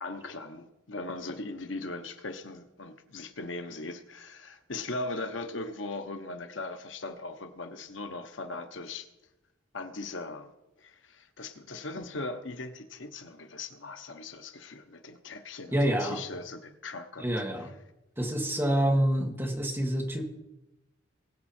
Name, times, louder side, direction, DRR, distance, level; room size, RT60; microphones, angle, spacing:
voice 1, 0.0-9.1 9.7-10.5 10.8-17.3 17.6-17.7, left 2 dB, 75° left, 1.0 m, -39 dB
voice 2, 15.7-16.2 17.2-17.7 18.2-20.2, right 1 dB, 10° right, 1.8 m, -27 dB
21.5 x 7.3 x 4.4 m
head